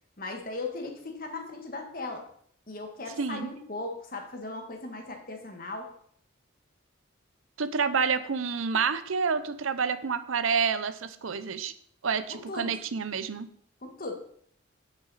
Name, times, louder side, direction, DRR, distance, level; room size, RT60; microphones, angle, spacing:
voice 1, 0.2-2.2 2.7-5.9 12.3-12.8 13.8-14.1, left 2 dB, 45° left, 3 dB, 1.6 m, -37 dB
voice 2, 3.2-3.5 7.6-11.7 12.0-13.5, right 5 dB, 85° right, 12 dB, 0.7 m, -28 dB
9.1 x 8.2 x 4.1 m, 0.63 s
head